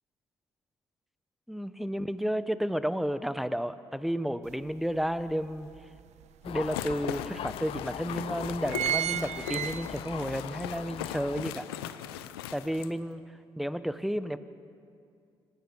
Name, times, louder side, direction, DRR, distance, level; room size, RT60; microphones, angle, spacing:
voice 1, 1.5-5.7 6.5-11.7 12.5-13.2 13.6-14.4, equal, ahead, 13 dB, 1.1 m, -32 dB
sound 1, 4.5-4.6 5.0-6.2 6.9-7.0 7.2-7.3 8.0-8.2 8.4-10.3 10.7-10.8, right 11 dB, 65° right, 0.7 m, -32 dB
Thunder, 6.4-11.4, left 10 dB, 50° left, 0.4 m, -40 dB
sound 2, 6.5-12.9, left 11 dB, 80° left, 0.7 m, -39 dB
26.5 x 16.5 x 6.3 m, 2.4 s
hypercardioid pair, 40°, 13 cm